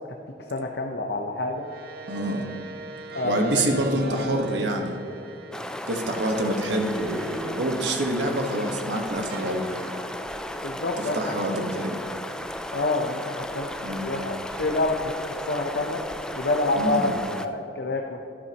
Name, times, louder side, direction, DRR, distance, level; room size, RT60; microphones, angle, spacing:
voice 1, 0.5-1.7 3.1-4.3 10.6-11.2 11.5-11.7 12.7-13.7 14.0-16.0 16.4-18.2, left 2 dB, 60° left, 2 dB, 0.7 m, -28 dB
sound 1, 1.5-8.9 9.3-11.7, right 3 dB, 55° right, 0.8 m, -42 dB
voice 2, 2.1-2.5 3.2-4.9 5.9-9.9 11.1-12.0 13.8-14.1 16.8-17.1, right 1 dB, 75° right, 3 dB, 1.3 m, -26 dB
sound 2, 5.5-17.5, left 1 dB, 5° left, 0.4 m, -35 dB
12.5 x 12.5 x 2.9 m, 3.0 s
head